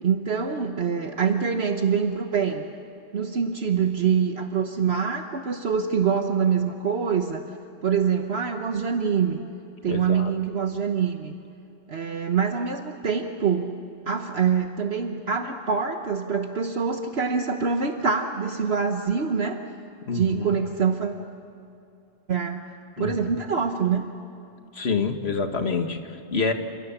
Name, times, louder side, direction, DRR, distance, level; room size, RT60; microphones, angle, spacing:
voice 1, 0.0-2.7 3.1-7.5 7.8-9.4 9.8-11.4 11.9-19.6 20.1-21.2 22.3-22.6 23.0-24.1, right 6 dB, 60° right, 5 dB, 1.3 m, -25 dB
voice 2, 9.9-10.3 20.1-20.6 23.0-23.4 24.7-26.5, left 4 dB, 65° left, 6 dB, 1.9 m, -27 dB
29.0 x 27.0 x 7.2 m, 2.7 s
omnidirectional pair, 1.2 m